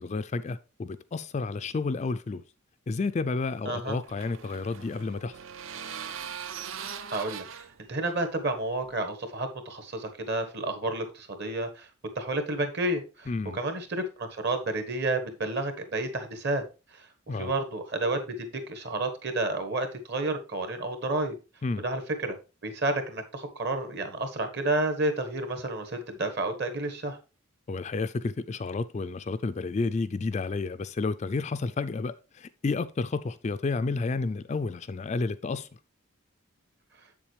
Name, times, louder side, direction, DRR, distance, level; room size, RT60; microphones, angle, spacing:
voice 1, 0.0-2.4 2.9-5.4 13.3-13.6 17.3-17.5 21.6-21.8 27.7-35.7, left 3 dB, 30° left, 0.3 m, -31 dB
sound 1, 3.5-9.0, right 7 dB, 65° right, 0.6 m, -41 dB
voice 2, 3.6-4.0 6.8-11.9 12.1-16.6 17.3-21.3 21.8-22.4 22.6-27.2, right 2 dB, 50° right, 1.4 m, -31 dB
7.5 x 7.1 x 3.2 m
head